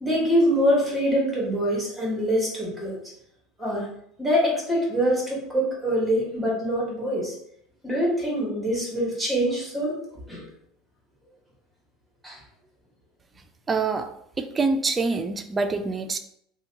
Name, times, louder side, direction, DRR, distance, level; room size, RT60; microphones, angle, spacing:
voice 1, 0.0-3.0 3.6-3.9 4.2-7.3 7.8-9.9 10.3-10.4 12.2-12.4, equal, 5° right, -4 dB, 1.3 m, -24 dB
voice 2, 13.7-14.1 14.4-16.2, right 4 dB, 20° right, 7 dB, 0.3 m, -25 dB
2.8 x 2.2 x 3.9 m, 0.71 s
supercardioid pair, 120°, 0 cm